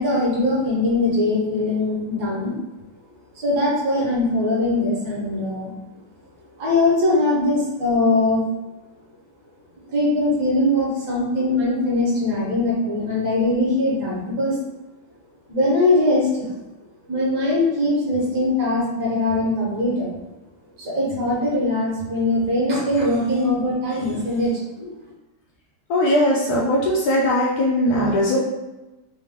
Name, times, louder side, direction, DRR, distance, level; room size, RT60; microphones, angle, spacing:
voice 1, 0.0-2.6 3.4-5.7 6.6-8.4 9.9-14.6 15.5-16.4 17.1-20.1 20.8-24.9, left 2 dB, 50° right, -6 dB, 1.9 m, -21 dB
voice 2, 25.9-28.4, left 1 dB, 75° left, -3 dB, 0.8 m, -19 dB
3.8 x 2.9 x 3.6 m, 1.1 s
omnidirectional pair, 2.4 m